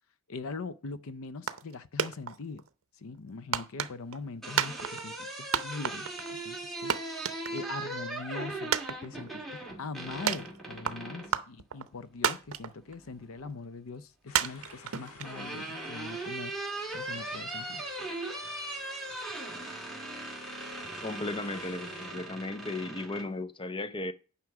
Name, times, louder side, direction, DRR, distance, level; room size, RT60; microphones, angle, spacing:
voice 1, 0.3-2.6 3.0-6.1 6.4-7.0 7.5-16.5 16.9-17.8, left 4 dB, 65° left, 0.6 m, -42 dB
sound 1, 1.5-1.7 2.0-2.7 3.5-4.2 4.6-5.3 5.5-6.3 6.6-6.7 6.9-7.9 8.2-8.3 8.7-9.5 10.3-11.0 11.3-11.9 12.2-12.9 13.3-13.4 14.3-15.6, right 8 dB, 65° right, 0.7 m, -30 dB
sound 2, 4.2-11.4 12.8-13.5 14.8-23.3, right 2 dB, ahead, 1.9 m, -39 dB
sound 3, 14.3-22.1, left 3 dB, 80° left, 1.5 m, -51 dB
voice 2, 21.0-24.1, left 2 dB, 25° left, 0.6 m, -35 dB
9.5 x 5.8 x 4.8 m
head